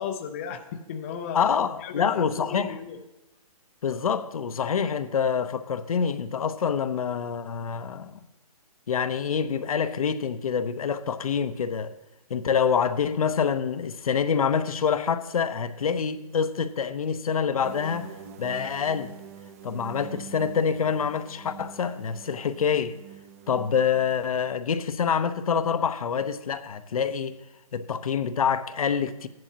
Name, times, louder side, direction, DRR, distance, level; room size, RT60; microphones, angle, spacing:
voice 1, 0.0-1.4 1.8-3.0, left 7 dB, 20° left, 0.5 m, -35 dB
voice 2, 1.3-2.8 3.8-8.2 8.9-11.9 12.3-18.1 18.4-19.1 19.6-23.0 23.5-27.4 27.7-29.3, left 7 dB, 70° left, 0.7 m, -26 dB
sound 1, 17.6-24.4, right 8 dB, 25° right, 0.5 m, -45 dB
13.5 x 10.5 x 2.8 m
hypercardioid pair, 160°, 19 cm